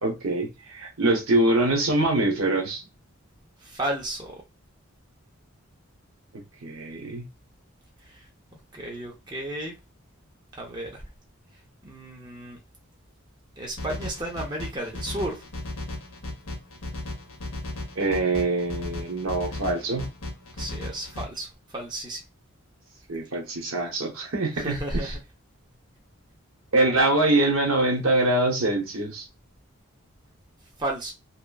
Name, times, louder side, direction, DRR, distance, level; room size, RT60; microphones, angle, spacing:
voice 1, 0.0-2.9 6.3-7.2 18.0-20.1 23.1-25.1 26.7-29.2, right 2 dB, 70° right, 0.8 m, -24 dB
voice 2, 3.6-4.4 8.0-8.2 8.7-9.8 10.6-11.0 11.8-12.6 13.6-15.4 20.6-21.5 21.7-22.2 24.6-25.2 30.8-31.1, right 1 dB, 20° right, 0.6 m, -33 dB
sound 1, 13.8-21.2, left 1 dB, 75° left, 0.8 m, -36 dB
2.9 x 2.3 x 2.3 m
head